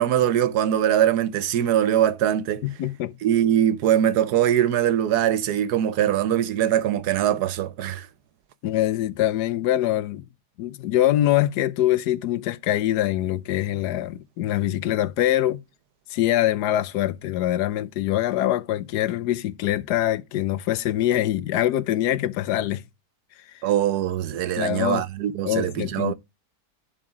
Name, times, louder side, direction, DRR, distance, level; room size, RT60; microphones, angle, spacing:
voice 1, 0.0-2.6 3.2-8.1 23.6-26.1, right 10 dB, 75° right, 1.3 m, -22 dB
voice 2, 2.6-3.1 8.6-10.2 10.6-15.6 16.1-22.8 24.6-25.0 25.4-26.1, left 13 dB, 80° left, 1.2 m, -24 dB
11.0 x 3.7 x 4.8 m
omnidirectional pair, 1.7 m